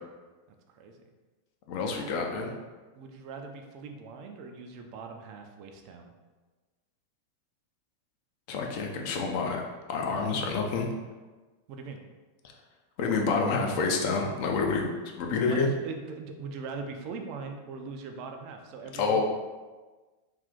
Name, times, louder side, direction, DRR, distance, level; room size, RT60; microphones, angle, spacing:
voice 1, 0.5-1.0 3.0-6.1 11.7-12.0 15.5-19.2, right 4 dB, 45° right, 4 dB, 0.4 m, -41 dB
voice 2, 1.7-2.5 8.5-9.6 9.9-10.9 13.0-14.9 15.2-15.7 19.0-19.2, left 4 dB, 45° left, 2 dB, 0.4 m, -28 dB
2.5 x 2.4 x 3.7 m, 1.3 s
figure-of-eight pair, 90°, 0 cm